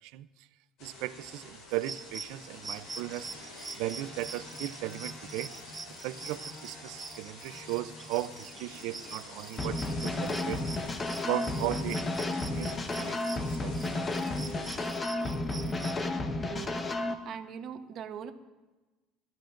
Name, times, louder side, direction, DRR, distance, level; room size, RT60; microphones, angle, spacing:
voice 1, 0.0-0.5 0.8-3.3 3.8-5.5 6.0-10.6 11.2-12.1 12.5-13.8, right 16 dB, 80° right, 15 dB, 0.5 m, -37 dB
sound 1, 0.8-14.9, left 2 dB, 75° left, 4.6 m, -48 dB
sound 2, 1.7-16.0, right 4 dB, 20° right, 0.7 m, -45 dB
sound 3, 9.6-17.1, left 2 dB, 25° left, 1.1 m, -32 dB
voice 2, 15.3-16.2 16.4-16.8 17.2-18.3, right 8 dB, 55° right, 8 dB, 1.1 m, -42 dB
28.5 x 12.5 x 2.6 m, 1.2 s
cardioid pair, 110°, 0 cm